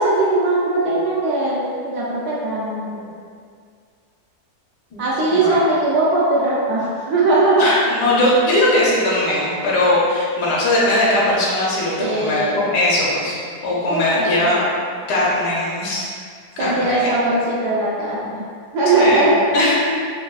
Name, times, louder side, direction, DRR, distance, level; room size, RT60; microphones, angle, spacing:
voice 1, 0.0-3.0 5.0-7.7 9.2-9.4 12.0-12.6 13.8-14.6 16.6-18.4 18.7-19.4, right 2 dB, 75° right, -7 dB, 1.1 m, -19 dB
voice 2, 5.3-5.6 7.6-13.4 13.6-14.7 15.1-16.0 16.6-17.1 18.9-19.7, left 1 dB, 80° left, -6 dB, 1.4 m, -19 dB
5.9 x 2.3 x 2.3 m, 2.1 s
omnidirectional pair, 1.7 m